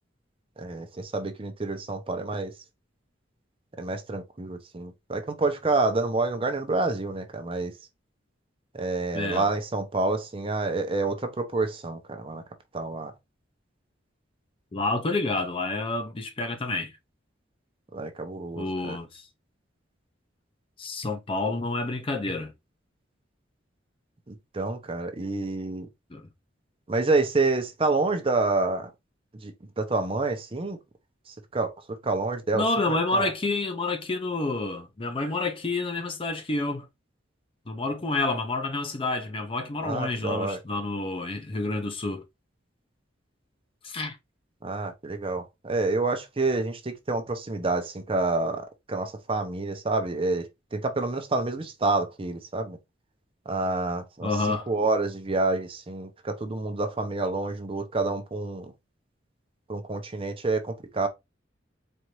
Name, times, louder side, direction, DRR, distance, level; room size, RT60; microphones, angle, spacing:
voice 1, 0.6-2.5 3.8-7.7 8.7-12.4 12.7-13.1 17.9-19.0 24.3-25.9 26.9-28.9 29.4-30.8 31.5-31.7 32.0-33.3 39.8-40.6 44.6-52.8 53.5-54.3 54.7-58.7 59.7-61.1, right 3 dB, 30° right, 0.7 m, -28 dB
voice 2, 9.1-9.5 14.7-16.9 18.5-19.2 20.8-22.5 26.1-26.2 32.5-36.9 37.7-42.2 43.8-44.2 54.2-54.7, left 2 dB, 30° left, 0.5 m, -29 dB
4.3 x 2.5 x 3.0 m
head